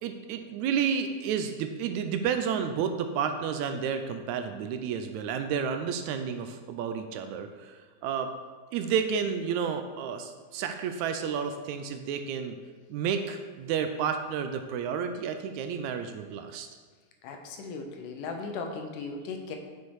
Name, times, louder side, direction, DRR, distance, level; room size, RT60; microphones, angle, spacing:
voice 1, 0.0-8.3 8.7-12.6 12.9-16.7, right 7 dB, 80° right, 7 dB, 1.8 m, -31 dB
voice 2, 17.2-19.6, left 4 dB, 90° left, 4 dB, 2.5 m, -37 dB
7.2 x 6.4 x 4.7 m, 1.4 s
omnidirectional pair, 3.5 m